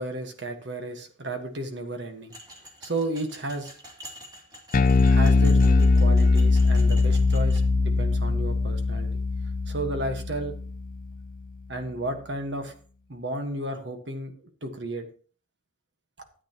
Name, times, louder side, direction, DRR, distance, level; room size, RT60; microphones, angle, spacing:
voice 1, 0.0-2.3 2.8-3.7 5.0-9.1 9.7-10.5 11.7-12.7 13.1-15.1, right 1 dB, 65° right, 5 dB, 1.5 m, -33 dB
sound 1, 2.3-7.6, equal, 25° right, 2.7 m, -47 dB
Bass guitar, 4.7-11.2, left 3 dB, 45° left, 0.4 m, -21 dB
13.0 x 8.8 x 3.0 m, 0.41 s
head